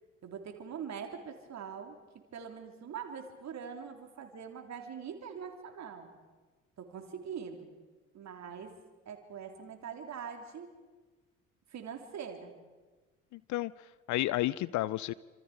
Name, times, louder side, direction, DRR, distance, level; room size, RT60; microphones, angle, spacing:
voice 1, 0.2-6.1 6.8-7.7 8.1-8.8 9.1-10.7 11.7-12.6, right 7 dB, 45° right, 4 dB, 3.7 m, -43 dB
voice 2, 13.3-15.1, left 16 dB, 45° left, 20 dB, 0.6 m, -32 dB
28.0 x 26.5 x 5.2 m, 1.3 s
figure-of-eight pair, 55°, 39 cm